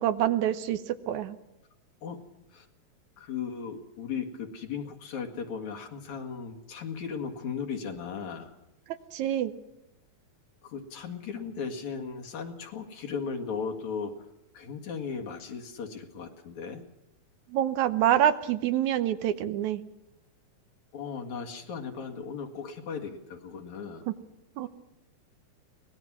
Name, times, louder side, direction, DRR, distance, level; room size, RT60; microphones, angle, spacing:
voice 1, 0.0-1.4 9.1-9.5 17.5-19.8 24.1-24.2 24.6-24.7, right 11 dB, 85° right, 11 dB, 2.3 m, -26 dB
voice 2, 3.2-8.6 10.6-14.2 14.5-16.8 20.9-24.0, left 6 dB, 75° left, 3 dB, 3.1 m, -36 dB
24.0 x 19.0 x 6.1 m, 0.89 s
omnidirectional pair, 3.3 m